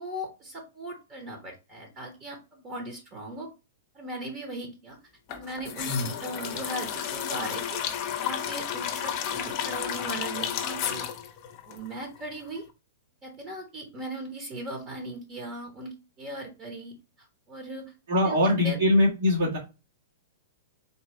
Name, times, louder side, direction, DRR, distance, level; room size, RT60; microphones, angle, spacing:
voice 1, 0.0-3.5 3.9-5.0 5.3-7.8 8.2-11.1 11.7-12.7 13.2-16.9 17.5-17.9 18.2-18.8, right 1 dB, 30° right, 3 dB, 1.0 m, -38 dB
sound 1, 5.3-12.3 12.6-12.7, left 9 dB, 40° left, 0.7 m, -32 dB
voice 2, 18.1-19.6, left 1 dB, 70° right, -8 dB, 1.5 m, -22 dB
4.0 x 3.0 x 3.1 m, 0.29 s
figure-of-eight pair, 105°, 0 cm